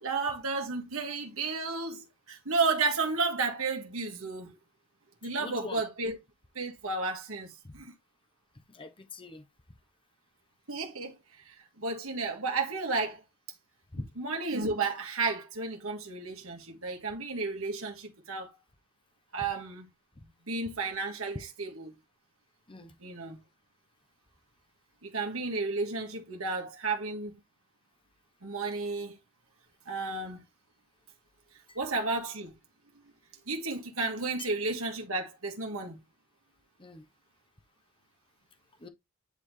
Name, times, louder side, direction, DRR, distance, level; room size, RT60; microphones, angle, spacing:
voice 1, 0.0-4.6 5.2-6.2 6.6-7.9 10.7-13.2 14.2-18.5 19.3-19.9 20.5-21.9 23.0-23.4 25.0-27.3 28.4-29.2 29.9-30.4 31.8-32.5 33.5-36.0, right 3 dB, 70° right, 1.9 m, -32 dB
voice 2, 5.4-5.8 8.7-9.4 13.9-14.0 22.7-22.9 31.7-31.8 36.8-37.0 38.8-38.9, left 2 dB, 25° left, 0.9 m, -43 dB
10.0 x 4.4 x 3.2 m
head